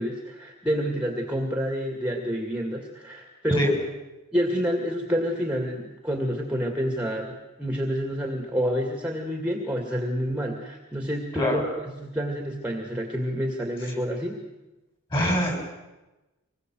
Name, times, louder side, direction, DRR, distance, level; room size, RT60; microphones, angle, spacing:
voice 1, 0.0-3.7 4.3-14.4, equal, 5° right, 2 dB, 2.2 m, -28 dB
voice 2, 15.1-15.6, equal, 25° left, 2 dB, 6.6 m, -23 dB
25.5 x 21.0 x 7.8 m, 1.0 s
head